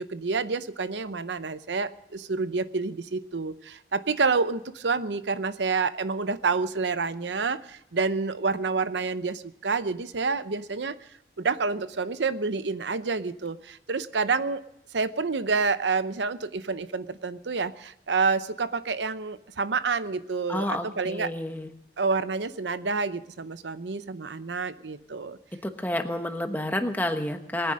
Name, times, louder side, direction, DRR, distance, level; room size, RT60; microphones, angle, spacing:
voice 1, 0.0-11.0 11.4-14.6 14.9-21.3 22.0-25.4, right 4 dB, 90° right, 13 dB, 0.7 m, -28 dB
voice 2, 20.5-21.7 25.6-27.7, left 1 dB, 10° left, 6 dB, 1.2 m, -29 dB
21.0 x 9.9 x 6.4 m, 0.80 s
head